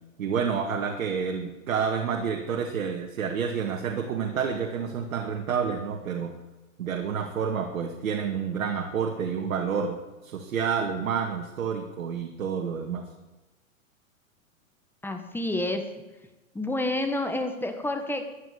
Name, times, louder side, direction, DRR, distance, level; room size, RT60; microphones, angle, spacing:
voice 1, 0.2-6.4 6.8-10.0 10.2-13.1, right 6 dB, 75° right, 2 dB, 2.3 m, -29 dB
voice 2, 15.0-16.0 16.5-18.3, left 2 dB, 5° left, 6 dB, 1.4 m, -29 dB
14.5 x 10.0 x 8.5 m, 1.1 s
hypercardioid pair, 135°, 41 cm